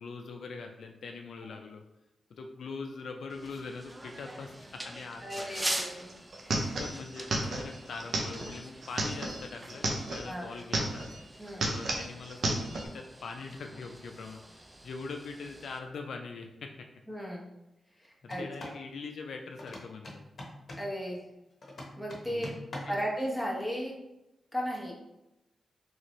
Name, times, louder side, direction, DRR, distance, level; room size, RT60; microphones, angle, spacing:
voice 1, 0.0-1.8 2.3-5.8 6.6-11.1 11.6-16.7 18.4-20.2 22.3-22.9, left 4 dB, 80° left, 4 dB, 0.3 m, -42 dB
sound 1, 3.3-15.8, right 1 dB, 20° right, 0.4 m, -43 dB
voice 2, 5.2-6.8 10.2-10.5 11.4-11.7 17.1-17.5 17.9-18.8 20.8-21.3 22.0-22.5 22.9-24.0 24.5-24.9, equal, ahead, -3 dB, 0.9 m, -36 dB
sound 2, 5.8-5.9 6.1-10.3 10.6-11.2 11.5-12.9, right 2 dB, 70° right, 0.6 m, -32 dB
sound 3, 18.2-18.8 19.6-20.9 21.6-23.1, left 1 dB, 60° left, 0.8 m, -44 dB
3.1 x 2.5 x 3.0 m, 0.92 s
cardioid pair, 60°, 0 cm